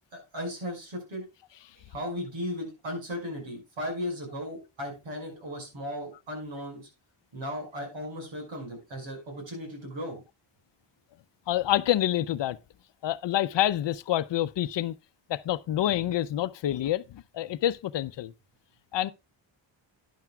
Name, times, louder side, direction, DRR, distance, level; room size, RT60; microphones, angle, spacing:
voice 1, 0.1-1.2 1.8-6.8 7.3-10.2, equal, 75° right, 5.5 m, -36 dB
voice 2, 11.5-12.6 13.0-14.9 15.3-18.3 18.9-19.1, left 12 dB, 65° left, 0.6 m, -27 dB
12.0 x 10.5 x 2.3 m
cardioid pair, 105°, 47 cm